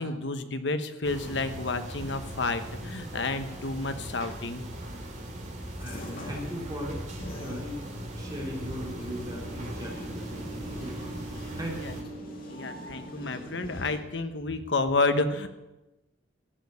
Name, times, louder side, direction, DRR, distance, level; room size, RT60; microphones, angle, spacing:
voice 1, 0.0-4.6 11.8-11.9 12.5-15.5, left 3 dB, 65° left, 9 dB, 1.0 m, -30 dB
sound 1, 1.0-12.0, right 1 dB, 40° right, 2.7 m, -40 dB
sound 2, 5.8-14.0, equal, 50° left, 2.2 m, -42 dB
voice 2, 5.8-7.9 8.1-11.2 11.6-12.0, equal, 20° right, -1 dB, 3.1 m, -39 dB
14.5 x 6.9 x 8.1 m, 1.0 s
head